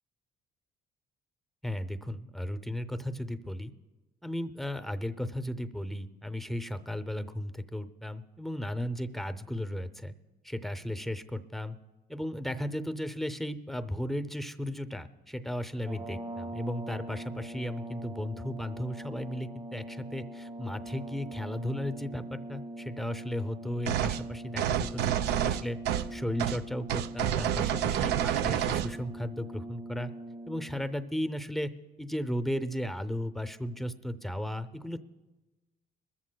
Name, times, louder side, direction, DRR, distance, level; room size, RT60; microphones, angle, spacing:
voice 1, 1.6-3.7 4.2-10.1 10.4-11.8 12.1-30.1 30.5-31.7 32.0-35.0, left 1 dB, ahead, 11 dB, 0.5 m, -35 dB
sound 1, 15.8-30.9, right 1 dB, 35° right, 1.2 m, -42 dB
sound 2, 23.9-24.2 24.6-26.1 26.4-26.6 26.9-28.9, right 11 dB, 80° right, 0.5 m, -28 dB
22.5 x 14.0 x 2.2 m, 1.2 s
cardioid pair, 110°, 17 cm